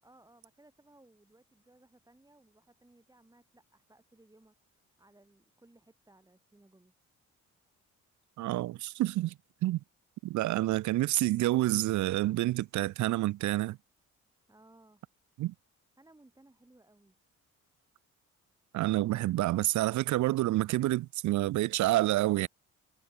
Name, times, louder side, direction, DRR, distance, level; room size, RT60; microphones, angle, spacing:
voice 1, 0.0-6.9 14.5-15.0 16.0-17.2, right 2 dB, 10° right, 6.1 m, -61 dB
voice 2, 8.4-9.3 9.6-9.8 10.2-13.8 15.4-15.5 18.7-22.5, right 16 dB, 70° right, 0.6 m, -28 dB
cardioid pair, 90°, 30 cm